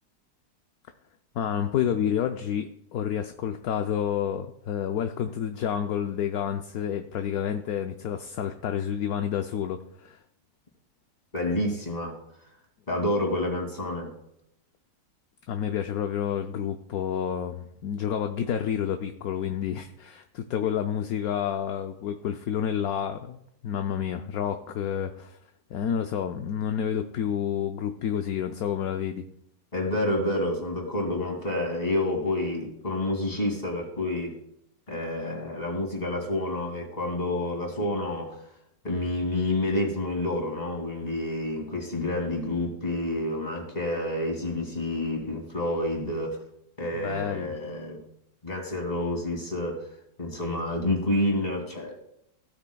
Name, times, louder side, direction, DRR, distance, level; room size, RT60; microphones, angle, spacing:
voice 1, 1.3-10.2 15.5-25.4 25.7-29.2 46.9-47.6, left 9 dB, 70° left, 6 dB, 0.9 m, -29 dB
voice 2, 11.3-12.2 12.9-14.1 29.7-34.3 34.9-38.4 38.8-46.4 46.8-48.0 48.4-49.9 50.2-51.9, left 1 dB, 20° left, 1 dB, 2.5 m, -29 dB
16.0 x 8.4 x 2.3 m, 0.74 s
omnidirectional pair, 1.9 m